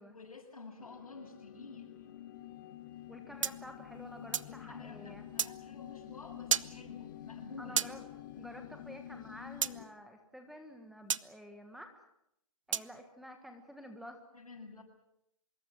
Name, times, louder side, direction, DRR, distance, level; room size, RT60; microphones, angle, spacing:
voice 1, 0.1-1.9 4.4-7.9 14.3-14.8, left 3 dB, 90° left, -3 dB, 7.5 m, -50 dB
sound 1, 0.8-9.9, left 12 dB, 35° left, 1.7 m, -48 dB
voice 2, 3.1-5.2 7.6-8.0 8.4-11.9 12.7-14.2, equal, ahead, 6 dB, 1.5 m, -50 dB
sound 2, 3.4-4.5 5.4-5.5 6.5-6.7 7.8-7.9 9.6-9.7 11.1-11.2 12.7-12.9, right 8 dB, 60° right, 0.8 m, -32 dB
25.0 x 22.5 x 7.6 m, 0.80 s
hypercardioid pair, 155°, 18 cm